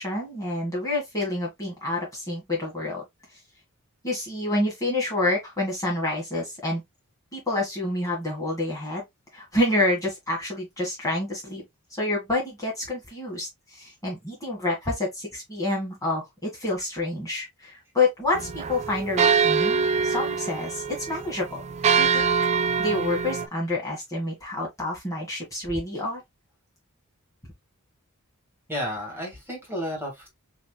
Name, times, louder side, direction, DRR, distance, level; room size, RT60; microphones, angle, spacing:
voice 1, 0.0-3.0 4.0-6.8 7.3-9.0 9.3-11.6 11.9-21.6 22.0-22.3 22.8-26.2, left 2 dB, 15° left, 1.6 m, -28 dB
sound 1, 18.3-23.5, right 6 dB, 30° right, 0.4 m, -24 dB
voice 2, 28.7-30.4, equal, 10° right, 1.9 m, -32 dB
5.7 x 2.9 x 2.2 m
head